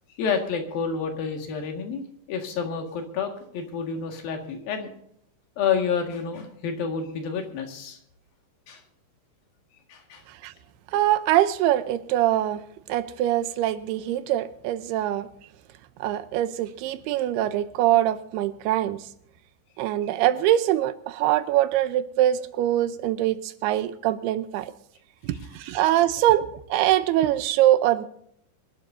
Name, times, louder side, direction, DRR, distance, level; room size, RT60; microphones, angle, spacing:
voice 1, 0.2-4.9 5.6-8.0 8.7-8.8 9.9-10.2, left 6 dB, 65° left, 3 dB, 3.6 m, -29 dB
voice 2, 10.9-12.6 12.9-15.3 16.0-19.1 19.8-24.7 25.2-28.1, right 13 dB, 85° right, 12 dB, 2.8 m, -23 dB
24.5 x 12.0 x 2.7 m, 0.69 s
omnidirectional pair, 4.6 m